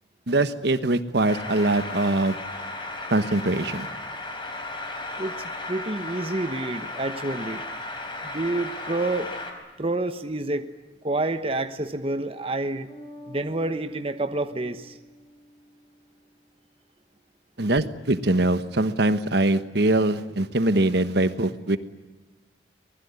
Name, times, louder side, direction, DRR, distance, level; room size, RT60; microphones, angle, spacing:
voice 1, 0.3-2.4 3.1-3.9 17.6-21.8, right 2 dB, 60° right, 11 dB, 1.2 m, -22 dB
sound 1, 1.2-9.5, left 2 dB, 25° left, 4.2 m, -35 dB
voice 2, 5.2-7.6 8.2-9.3 9.8-10.7 11.0-12.9 13.3-15.0, right 2 dB, 30° right, 9 dB, 1.1 m, -28 dB
Bass guitar, 12.9-16.4, equal, ahead, 5.8 m, -47 dB
25.0 x 20.5 x 9.6 m, 1.2 s
head